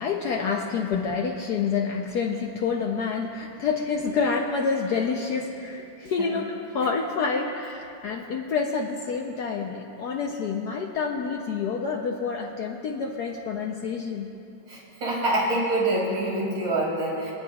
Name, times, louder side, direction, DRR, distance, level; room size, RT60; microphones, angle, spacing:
voice 1, 0.0-14.3, left 5 dB, 65° left, 1 dB, 1.1 m, -28 dB
voice 2, 14.7-17.3, right 1 dB, 70° right, -4 dB, 3.2 m, -26 dB
28.0 x 9.6 x 2.3 m, 2.8 s
omnidirectional pair, 2.1 m